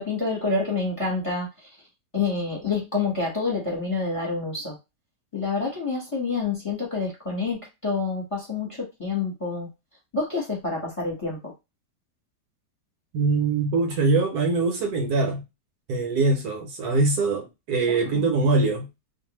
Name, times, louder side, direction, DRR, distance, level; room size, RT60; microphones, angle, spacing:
voice 1, 0.0-1.5 2.1-4.7 5.3-9.7 10.1-11.4 17.9-18.3, left 4 dB, 20° left, 1.1 m, -28 dB
voice 2, 13.1-15.4 15.9-18.9, right 3 dB, 75° right, 1.2 m, -23 dB
2.5 x 2.5 x 3.0 m
omnidirectional pair, 1.8 m